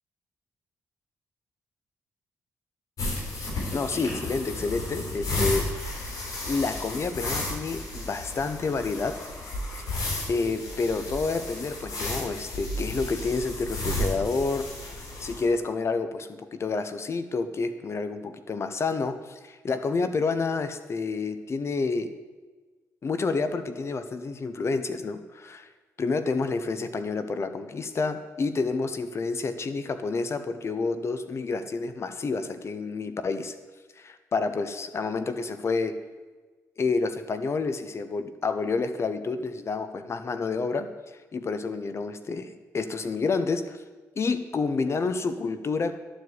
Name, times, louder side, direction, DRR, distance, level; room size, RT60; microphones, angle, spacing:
sound 1, 3.0-15.4, left 1 dB, 70° left, 3.7 m, -33 dB
voice 1, 3.7-5.7 5.9-6.1 6.5-9.1 10.3-22.1 23.0-25.7 26.0-33.5 34.0-35.9 36.8-40.9 41.3-43.8 44.2-46.0, left 4 dB, 45° left, 10 dB, 0.8 m, -29 dB
11.5 x 4.7 x 8.1 m, 1.3 s
cardioid pair, 75°, 6 cm